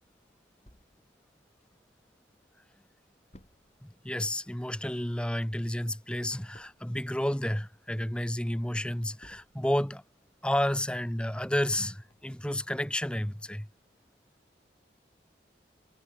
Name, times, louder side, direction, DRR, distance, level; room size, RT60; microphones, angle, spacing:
sound 1, 0.7-2.2 2.6-2.7 2.9-9.9 10.3-12.4 12.9-13.0 13.4-13.5, left 1 dB, 35° left, 5.2 m, -61 dB
voice 1, 3.8-10.0 10.4-13.7, left 1 dB, 5° left, 0.9 m, -31 dB
head